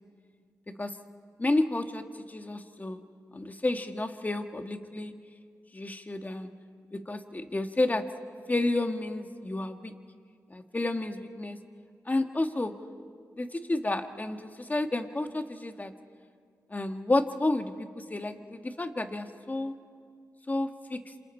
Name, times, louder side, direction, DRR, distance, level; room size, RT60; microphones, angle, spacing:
voice 1, 1.4-2.0 2.3-3.0 3.3-5.1 5.7-6.5 6.9-8.0 8.5-9.9 10.5-11.6 12.1-12.7 13.4-15.9 16.7-19.7 20.5-21.0, left 2 dB, 25° left, 7 dB, 1.5 m, -31 dB
27.0 x 26.0 x 4.4 m, 2.1 s
cardioid pair, 60°, 6 cm